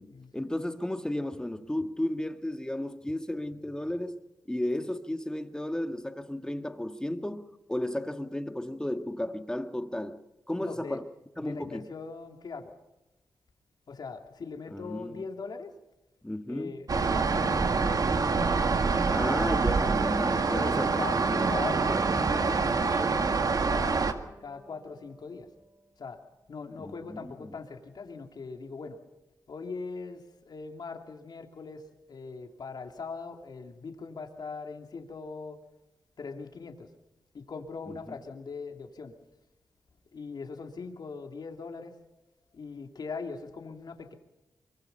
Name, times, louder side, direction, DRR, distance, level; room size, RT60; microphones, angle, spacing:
voice 1, 0.0-4.2 4.5-11.0 11.4-11.8 14.7-15.2 16.2-16.8 19.1-20.9 21.3-21.6 26.8-27.5 37.9-38.2, left 1 dB, 10° left, 1.9 m, -34 dB
voice 2, 10.6-11.0 11.4-12.7 13.9-15.7 16.5-18.0 20.5-24.1 24.4-25.5 26.0-26.2 26.5-29.0 29.5-35.6 36.2-36.9 37.3-39.1 40.1-42.0 42.5-44.1, left 4 dB, 65° left, 2.8 m, -41 dB
sound 1, 16.9-24.1, right 4 dB, 55° right, 1.9 m, -26 dB
piano sequence, 18.9-25.8, right 1 dB, 30° right, 5.1 m, -46 dB
24.0 x 23.5 x 5.6 m
cardioid pair, 70°, 8 cm